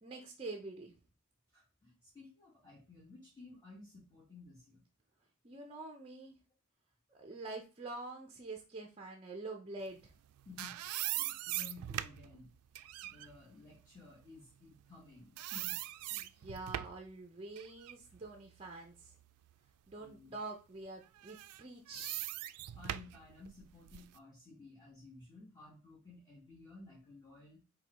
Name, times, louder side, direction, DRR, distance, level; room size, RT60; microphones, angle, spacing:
voice 1, 0.0-0.9 5.4-6.4 7.1-10.1 16.1-19.1 19.9-22.3, right 3 dB, 25° right, 2 dB, 0.5 m, -46 dB
voice 2, 1.5-4.8 10.4-10.8 11.1-12.5 13.0-15.8 20.0-20.4 22.7-27.6, left 3 dB, 15° left, -7 dB, 1.3 m, -55 dB
sound 1, 10.1-15.1 15.4-17.1 17.6-19.5 20.0-20.1 21.2-24.2, right 14 dB, 85° right, 0.3 m, -42 dB
4.8 x 2.2 x 4.1 m, 0.32 s
head